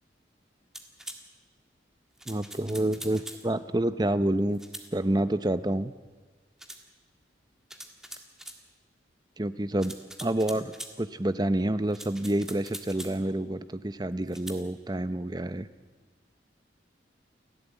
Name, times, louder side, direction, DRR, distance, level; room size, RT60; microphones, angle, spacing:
sound 1, 0.7-1.2 2.2-3.5 4.5-4.9 6.6-6.8 7.7-8.6 9.8-11.0 11.9-13.2 14.3-14.6, right 1 dB, 5° right, 1.7 m, -43 dB
voice 1, 2.3-4.6 4.9-5.9 9.4-15.7, right 1 dB, 20° right, 13 dB, 0.7 m, -28 dB
29.5 x 12.0 x 9.1 m, 1.4 s
head